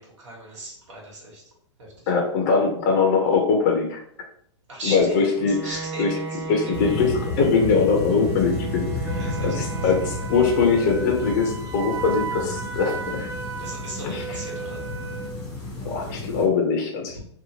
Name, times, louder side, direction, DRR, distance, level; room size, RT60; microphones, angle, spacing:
voice 1, 0.0-1.4 1.8-1.9 4.7-5.1 5.6-6.2 9.2-9.5 13.6-14.8, right 1 dB, 80° right, -2 dB, 1.4 m, -37 dB
voice 2, 2.1-4.0 4.8-13.3 14.0-14.4 15.8-17.2, left 5 dB, 40° left, 1 dB, 0.5 m, -22 dB
Bowed string instrument, 5.3-10.6, right 3 dB, 15° right, 1.1 m, -35 dB
sound 1, 6.7-16.5, left 2 dB, 5° left, 0.7 m, -32 dB
Wind instrument woodwind instrument, 9.0-15.4, right 6 dB, 50° right, 0.5 m, -35 dB
2.7 x 2.2 x 2.8 m, 0.65 s
hypercardioid pair, 150°, 15 cm